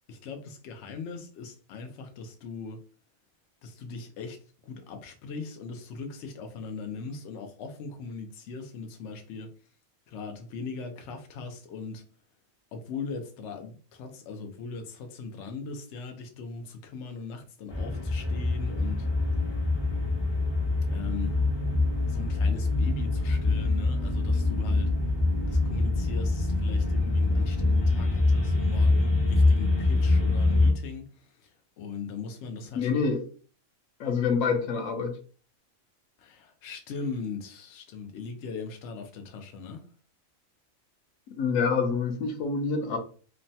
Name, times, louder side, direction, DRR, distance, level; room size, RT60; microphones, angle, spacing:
voice 1, 0.1-2.8 3.6-4.4 4.6-9.5 10.1-12.0 12.7-19.1 20.9-21.4 22.0-24.9 25.5-32.9 36.2-39.9, left 4 dB, 65° left, 0.8 m, -39 dB
sound 1, 17.7-30.7, left 2 dB, 25° left, 0.6 m, -25 dB
voice 2, 32.8-33.3 34.0-35.2 41.4-43.0, left 5 dB, 85° left, 1.0 m, -26 dB
3.1 x 2.1 x 2.6 m
omnidirectional pair, 1.4 m